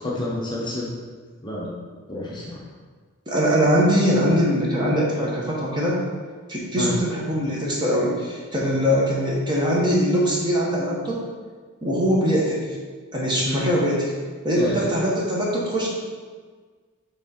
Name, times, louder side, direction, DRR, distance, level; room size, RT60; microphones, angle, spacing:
voice 1, 0.0-0.9 1.4-1.7 2.1-2.6 6.8-6.9 8.6-9.0 13.4-13.6 14.6-14.9, left 1 dB, 20° left, -5 dB, 0.9 m, -29 dB
voice 2, 3.3-6.0 6.5-11.3 11.8-12.7 13.1-14.1 14.4-15.9, equal, 20° right, -4 dB, 1.1 m, -22 dB
6.2 x 3.6 x 4.3 m, 1.5 s
head